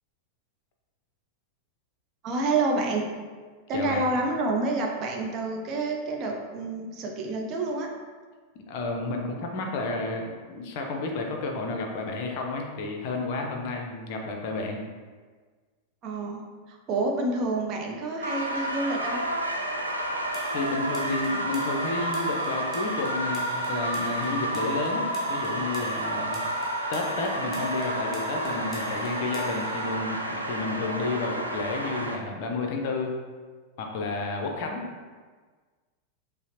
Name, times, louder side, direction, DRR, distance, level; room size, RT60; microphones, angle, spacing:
voice 1, 2.2-3.1 3.7-7.9 16.0-19.2, right 2 dB, 35° right, 0 dB, 0.6 m, -28 dB
voice 2, 3.7-4.1 8.5-14.8 20.5-26.4 26.9-33.1 33.8-34.8, left 3 dB, 45° left, 1 dB, 0.5 m, -31 dB
sound 1, 18.2-32.1, right 1 dB, 85° right, 0.4 m, -30 dB
sound 2, 20.3-29.9, equal, 5° right, 0.8 m, -46 dB
5.5 x 2.0 x 2.8 m, 1.5 s
figure-of-eight pair, 90°, 0 cm